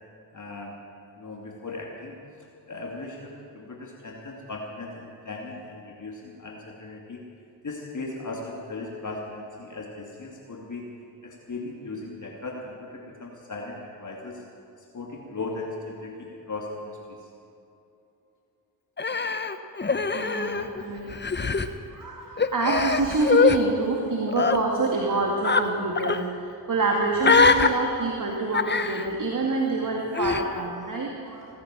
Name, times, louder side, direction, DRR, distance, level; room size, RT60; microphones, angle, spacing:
voice 1, 0.3-0.8 1.2-2.1 2.7-7.2 7.6-10.8 11.2-14.4 14.9-17.2, left 3 dB, 40° left, -1 dB, 2.6 m, -37 dB
Human voice, 19.0-20.8 21.1-21.7 22.4-23.6 24.3-24.6 25.4-25.6 25.9-26.2 27.2-27.7 28.5-29.1 30.1-30.4, left 4 dB, 25° left, 1.1 m, -22 dB
voice 2, 19.8-21.4 21.9-31.5, right 3 dB, 40° right, 0 dB, 2.3 m, -27 dB
18.0 x 10.0 x 7.6 m, 2.7 s
hypercardioid pair, 40°, 47 cm